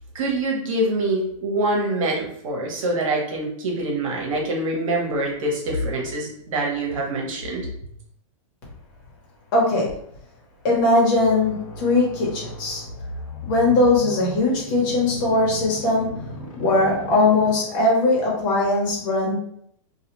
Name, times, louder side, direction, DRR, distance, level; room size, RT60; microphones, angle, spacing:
voice 1, 0.1-7.7, right 1 dB, 65° right, -1 dB, 1.1 m, -25 dB
voice 2, 9.5-9.9 10.6-12.8 13.4-16.1 16.6-19.3, left 2 dB, 35° left, -4 dB, 1.1 m, -20 dB
sound 1, 11.1-18.0, left 1 dB, 75° left, 0.9 m, -36 dB
2.4 x 2.3 x 3.0 m, 0.69 s
supercardioid pair, 165°, 18 cm